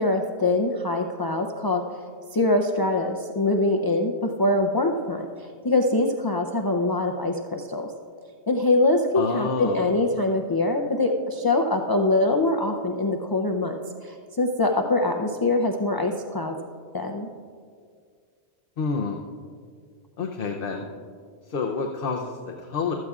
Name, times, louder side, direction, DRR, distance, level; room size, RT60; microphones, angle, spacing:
voice 1, 0.0-2.0 2.3-7.9 8.5-16.6 16.9-17.3, left 2 dB, 35° left, 3 dB, 0.3 m, -24 dB
voice 2, 9.1-9.9 18.8-19.2 20.2-20.9 21.5-22.9, left 5 dB, 55° left, 2 dB, 0.8 m, -28 dB
15.5 x 13.0 x 2.4 m, 2.1 s
omnidirectional pair, 1.2 m